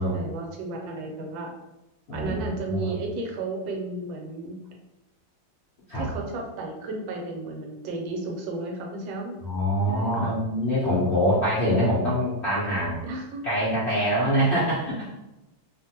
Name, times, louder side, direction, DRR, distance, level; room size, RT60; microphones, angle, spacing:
voice 1, 0.0-1.6 2.1-4.6 5.9-9.4 9.9-10.4 13.0-13.4, right 2 dB, 90° right, 1 dB, 1.4 m, -33 dB
voice 2, 2.1-2.9 5.9-6.1 9.4-13.0 13.4-15.2, equal, 65° left, -9 dB, 0.6 m, -24 dB
2.8 x 2.5 x 2.8 m, 0.94 s
omnidirectional pair, 2.1 m